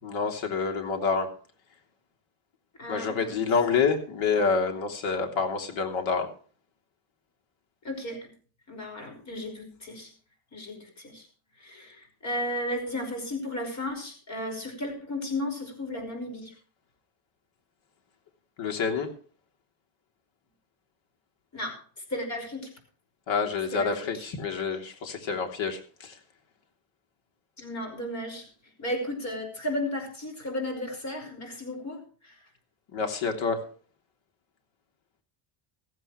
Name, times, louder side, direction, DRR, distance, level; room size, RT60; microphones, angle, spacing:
voice 1, 0.0-1.3 2.9-6.3 18.6-19.1 23.3-26.1 32.9-33.6, left 5 dB, 65° left, 4 dB, 3.3 m, -27 dB
voice 2, 2.8-3.4 4.3-4.4 7.8-8.3 8.7-10.1 10.5-11.3 11.6-16.5 21.5-21.8 22.1-22.7 23.7-24.3 27.6-28.5 28.8-32.4, left 1 dB, 35° left, 5 dB, 5.5 m, -34 dB
15.5 x 15.0 x 3.2 m, 0.41 s
cardioid pair, 140°, 49 cm